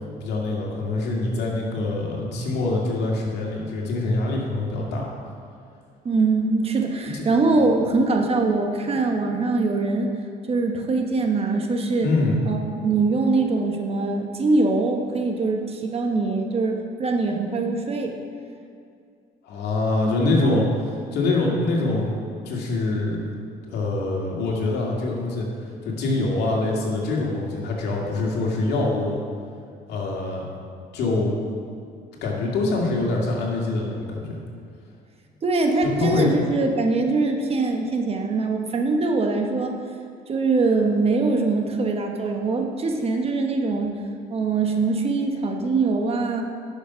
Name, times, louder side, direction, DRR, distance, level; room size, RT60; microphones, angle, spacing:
voice 1, 0.2-5.1 7.1-7.2 12.0-12.4 19.4-20.7 21.1-22.2 22.4-23.3 23.7-29.2 29.9-30.5 30.9-31.3 32.2-34.3 36.0-36.3, left 2 dB, 75° left, -2 dB, 2.3 m, -24 dB
voice 2, 6.0-10.1 10.5-12.1 12.5-18.1 20.1-20.6 35.4-39.8 40.3-43.9 44.3-46.4, right 3 dB, 35° right, 3 dB, 1.1 m, -23 dB
10.0 x 6.5 x 5.7 m, 2.4 s
cardioid pair, 110°, 17 cm